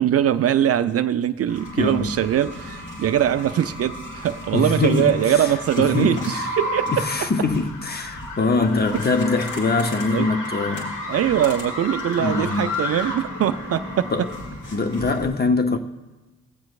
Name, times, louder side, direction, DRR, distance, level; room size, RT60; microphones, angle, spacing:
voice 1, 0.0-7.0 10.1-10.3 11.1-14.1, right 10 dB, 45° right, 0.4 m, -22 dB
sound 1, 1.5-15.3, left 1 dB, 65° left, 2.7 m, -32 dB
voice 2, 1.8-2.2 4.5-5.5 5.8-6.4 6.9-11.0 12.2-12.7 14.1-14.3 14.7-15.8, left 3 dB, 30° left, 0.7 m, -23 dB
20.5 x 7.5 x 2.4 m
hypercardioid pair, 45°, 33 cm